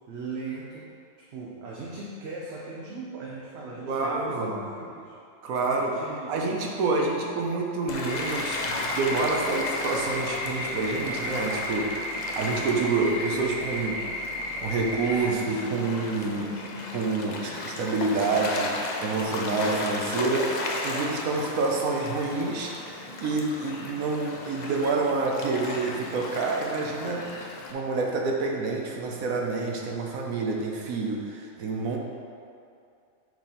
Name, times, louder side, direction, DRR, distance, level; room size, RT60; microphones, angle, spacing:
voice 1, 0.1-5.2 5.7-6.5 15.1-17.0, right 2 dB, 60° right, -4 dB, 0.8 m, -39 dB
voice 2, 3.8-4.6 5.4-5.9 6.3-14.0 14.5-16.5 16.9-18.7 19.0-27.2 27.7-32.0, right 3 dB, 80° right, 0 dB, 1.2 m, -28 dB
Gull seagull / Waves surf, 7.9-27.7, left 2 dB, 90° left, 0.3 m, -35 dB
sound 1, 8.1-15.3, left 1 dB, 45° left, 1.0 m, -34 dB
6.0 x 3.8 x 4.2 m, 2.5 s
omnidirectional pair, 1.5 m